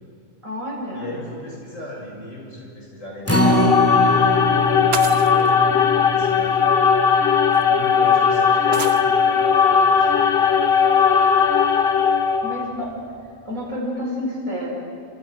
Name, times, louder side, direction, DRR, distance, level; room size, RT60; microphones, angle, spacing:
voice 1, 0.4-1.1 12.4-13.1 13.4-14.7, equal, 75° right, -5 dB, 6.8 m, -29 dB
voice 2, 0.9-5.0 5.3-6.7 7.6-10.6, left 1 dB, 65° left, -2 dB, 7.4 m, -37 dB
sound 1, 3.3-12.7, left 6 dB, 50° left, 1.1 m, -18 dB
Acoustic guitar, 3.3-9.6 10.0-10.1 10.5-10.6, equal, 10° left, 2.4 m, -25 dB
sound 2, 3.5-3.7 4.9-5.5 6.7-6.8 7.5-7.6 8.7-9.1, right 7 dB, 55° right, 1.0 m, -30 dB
30.0 x 26.5 x 6.3 m, 2.4 s
omnidirectional pair, 1.4 m